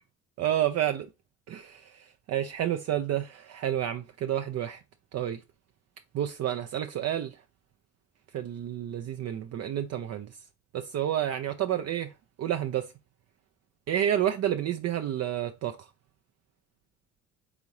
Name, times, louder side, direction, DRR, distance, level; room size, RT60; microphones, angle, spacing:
voice 1, 0.4-1.1 1.5-4.8 5.1-5.4 6.1-7.4 8.3-10.3 10.7-12.1 12.4-12.9 13.9-15.9, right 11 dB, 55° right, 0.5 m, -30 dB
4.0 x 3.7 x 3.1 m
cardioid pair, 90°, 30 cm